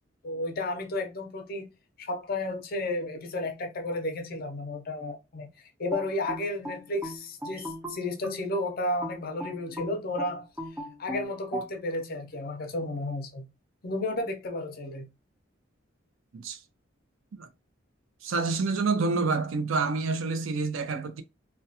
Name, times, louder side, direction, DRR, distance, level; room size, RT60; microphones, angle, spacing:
voice 1, 0.2-1.7 2.0-5.5 5.8-10.4 11.0-13.5 13.8-15.1, left 1 dB, 50° left, 0.5 m, -32 dB
sound 1, 5.9-8.5 9.0-11.7, equal, 10° right, 0.6 m, -38 dB
voice 2, 18.2-21.2, right 4 dB, 80° right, 0.5 m, -28 dB
2.3 x 2.2 x 2.7 m
head